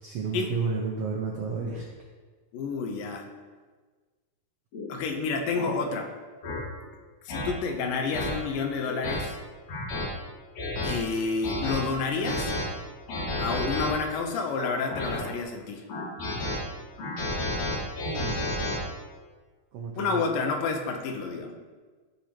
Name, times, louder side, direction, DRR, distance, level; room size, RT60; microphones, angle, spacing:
voice 1, 0.0-1.8 18.0-18.4 19.7-20.2, right 5 dB, 90° right, 0 dB, 1.3 m, -31 dB
voice 2, 2.5-3.3 4.9-6.1 7.3-9.4 10.8-12.5 13.4-15.9 20.0-21.5, left 4 dB, 80° left, 4 dB, 2.5 m, -29 dB
sound 1, 4.7-4.9 5.5-5.7 6.4-6.6 7.3-7.5 8.1-8.3 8.8-9.2 9.7-10.1 10.6-10.9 11.4-11.8 12.2-12.6 13.1-13.9 14.5-15.2 15.9-16.6 17.0-18.8, left 1 dB, 55° left, 2.7 m, -31 dB
15.0 x 5.1 x 2.9 m, 1.4 s
omnidirectional pair, 4.0 m